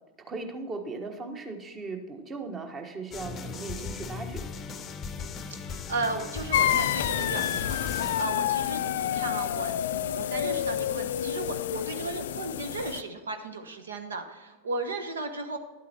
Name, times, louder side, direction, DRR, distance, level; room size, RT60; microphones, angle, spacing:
voice 1, 0.2-4.5, right 3 dB, 25° right, 5 dB, 1.3 m, -38 dB
sound 1, 3.1-8.2, left 5 dB, 25° left, 0.7 m, -38 dB
voice 2, 5.6-15.6, right 3 dB, 70° right, 7 dB, 1.2 m, -35 dB
sound 2, 6.5-13.0, left 11 dB, 60° left, 0.4 m, -29 dB
12.0 x 8.3 x 4.4 m, 1.3 s
figure-of-eight pair, 90°, 0 cm